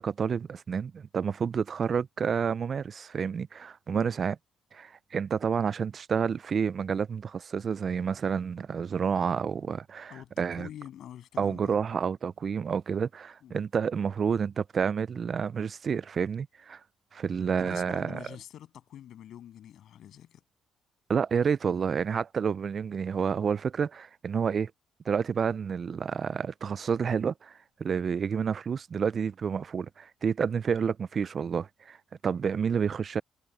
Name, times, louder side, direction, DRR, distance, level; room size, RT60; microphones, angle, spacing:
voice 1, 0.0-4.4 4.7-10.7 11.4-16.8 17.1-18.2 21.1-24.7 25.1-32.0 32.2-33.2, right 6 dB, 45° right, 0.3 m, -29 dB
voice 2, 10.1-11.8 13.4-13.6 17.6-20.4, left 11 dB, 70° left, 7.6 m, -46 dB
cardioid pair, 90°, 0 cm